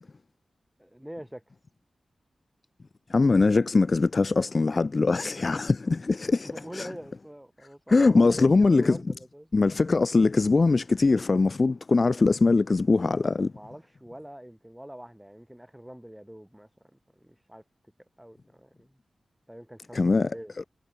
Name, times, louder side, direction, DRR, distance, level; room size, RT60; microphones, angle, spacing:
voice 1, 0.8-1.5 5.6-5.7 6.4-9.5 13.5-16.7 17.1-17.6 18.2-18.9 19.5-20.7, equal, 5° right, 1.9 m, -44 dB
voice 2, 3.1-6.9 7.9-9.0 9.5-13.5 19.9-20.3, left 3 dB, 45° left, 0.7 m, -22 dB
cardioid pair, 70°, 0 cm